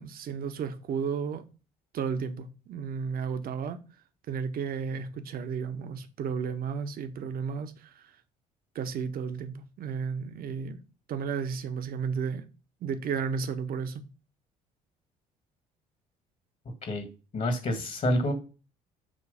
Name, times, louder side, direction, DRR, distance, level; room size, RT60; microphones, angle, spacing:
voice 1, 0.0-1.4 1.9-3.8 4.3-8.0 8.7-10.8 11.1-12.4 12.8-14.0, right 6 dB, 55° right, 1.1 m, -33 dB
voice 2, 17.3-18.3, left 1 dB, 45° left, 1.9 m, -27 dB
7.5 x 3.1 x 5.6 m
hypercardioid pair, 55°, 18 cm